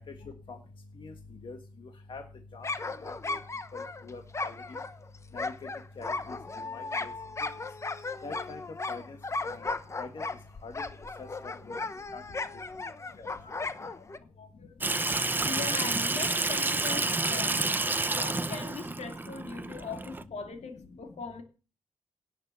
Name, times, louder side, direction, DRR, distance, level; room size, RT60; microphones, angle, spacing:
sound 1, 2.6-14.2, left 3 dB, 25° left, 0.9 m, -36 dB
voice 1, 4.0-4.5 5.3-5.5 6.0-6.4 6.7-7.1 8.2-8.6 8.9-9.0 9.4-9.7 10.0-10.1 10.6-10.7 11.2-11.3 11.7-11.8 12.1-12.2 13.2-13.3, left 3 dB, 45° left, 4 dB, 1.6 m, -42 dB
voice 2, 12.7-17.6 18.1-21.4, left 5 dB, 65° left, 5 dB, 2.7 m, -41 dB
Water tap faucet / Sink (filling or washing), 14.8-20.2, right 2 dB, 15° right, 0.7 m, -29 dB
17.5 x 6.7 x 6.9 m, 0.36 s
wide cardioid pair, 150°, 12 cm